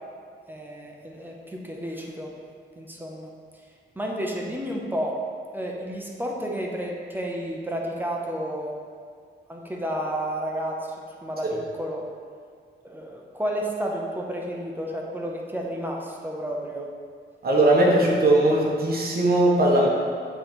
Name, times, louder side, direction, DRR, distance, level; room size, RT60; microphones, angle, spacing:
voice 1, 0.5-2.3 2.8-3.3 4.0-5.1 5.5-8.7 9.5-12.0 12.8-16.9, equal, 10° right, -1 dB, 0.7 m, -31 dB
voice 2, 17.4-19.9, right 1 dB, 50° right, -2 dB, 1.2 m, -19 dB
6.9 x 3.9 x 4.4 m, 2.1 s
wide cardioid pair, 130°, 20 cm